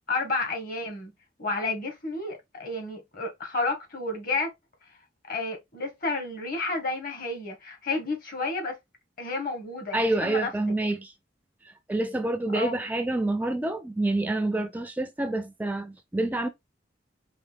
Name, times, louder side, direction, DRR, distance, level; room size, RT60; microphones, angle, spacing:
voice 1, 0.1-1.1 1.4-4.5 5.3-8.8 9.2-10.5 12.5-12.7, left 3 dB, 50° left, 1.8 m, -31 dB
voice 2, 9.9-11.1 11.6-16.5, right 2 dB, 10° right, 0.4 m, -27 dB
4.7 x 3.1 x 3.6 m
head